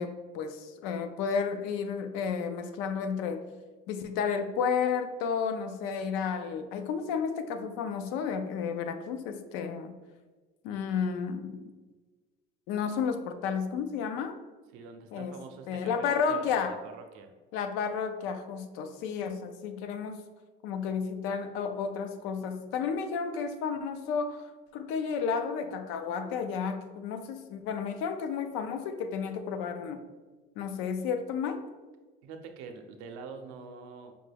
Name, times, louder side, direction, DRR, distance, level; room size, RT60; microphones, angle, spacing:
voice 1, 0.0-3.4 3.9-9.9 10.6-11.7 12.7-14.4 15.1-15.3 15.7-16.8 17.5-20.2 20.6-24.5 24.7-30.0 30.6-31.6, left 6 dB, 80° left, 8 dB, 0.5 m, -32 dB
voice 2, 14.7-17.3 32.2-34.1, right 5 dB, 80° right, 5 dB, 0.6 m, -45 dB
5.1 x 2.2 x 3.3 m, 1.3 s
cardioid pair, 135°, 21 cm